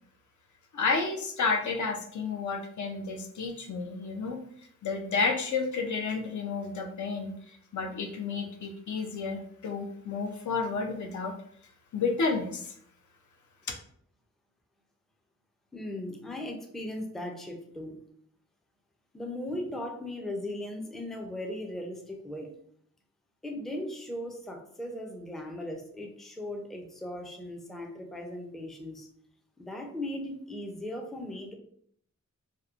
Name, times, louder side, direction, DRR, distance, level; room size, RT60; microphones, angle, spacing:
voice 1, 0.7-4.4 4.8-11.4 11.9-12.7, left 4 dB, 65° left, 4 dB, 0.5 m, -31 dB
voice 2, 15.7-18.0 19.1-22.5 23.4-29.1 29.6-31.5, left 1 dB, ahead, 2 dB, 0.4 m, -38 dB
2.8 x 2.0 x 2.3 m, 0.64 s
wide cardioid pair, 90°, 31 cm